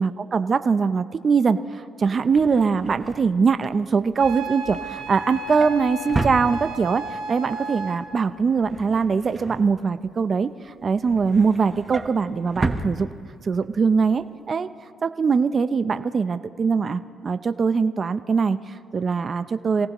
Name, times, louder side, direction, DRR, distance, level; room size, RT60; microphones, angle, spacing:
voice 1, 0.0-13.1 13.4-14.7 15.0-19.9, right 5 dB, 40° right, 11 dB, 0.6 m, -22 dB
Drawer open or close, 2.1-7.1 7.5-7.8 8.0-10.3 10.7-13.7 14.0-14.2 14.5-14.6, right 3 dB, 25° right, 1.1 m, -33 dB
Wind instrument woodwind instrument, 4.2-8.0, right 2 dB, 80° right, 2.9 m, -33 dB
27.0 x 18.0 x 3.0 m, 2.2 s
cardioid pair, 90°, 0 cm